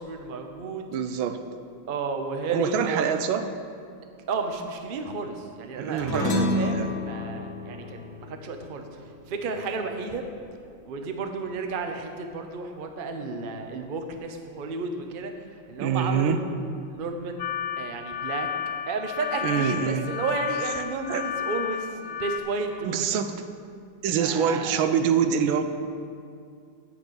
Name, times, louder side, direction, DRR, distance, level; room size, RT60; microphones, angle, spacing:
voice 1, 0.0-0.9 1.9-3.0 4.3-8.8 9.3-10.2 10.8-15.3 15.7-16.4 16.9-17.4 17.8-18.5 18.9-23.1 24.2-24.9, right 4 dB, 55° right, 5 dB, 0.5 m, -32 dB
voice 2, 0.9-1.4 2.5-3.5 5.7-6.9 15.8-16.4 19.4-20.1 20.8-21.3 22.8-23.4 24.0-25.6, right 7 dB, 90° right, 9 dB, 1.5 m, -25 dB
sound 1, 6.0-10.7, left 2 dB, 60° left, 1.4 m, -31 dB
sound 2, 17.4-22.4, left 9 dB, 85° left, 0.7 m, -32 dB
8.9 x 6.6 x 8.1 m, 2.3 s
omnidirectional pair, 2.1 m